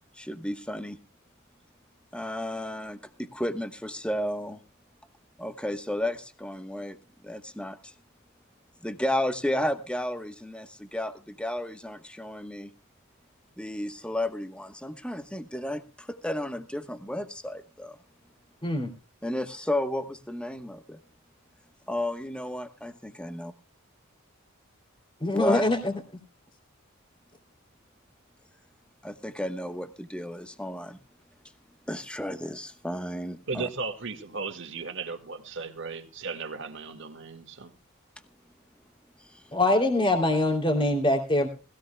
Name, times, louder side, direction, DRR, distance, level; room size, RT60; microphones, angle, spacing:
voice 1, 0.2-1.0 2.1-4.6 5.4-7.0 7.2-7.9 8.8-12.7 13.6-18.0 19.2-21.0 21.9-23.5 25.3-25.6 29.0-31.0 31.9-33.7, left 1 dB, 5° left, 1.0 m, -33 dB
voice 2, 25.2-25.9 39.5-41.5, left 1 dB, 25° left, 2.8 m, -23 dB
voice 3, 33.5-37.7, right 4 dB, 60° right, 1.8 m, -36 dB
20.5 x 16.0 x 2.2 m
head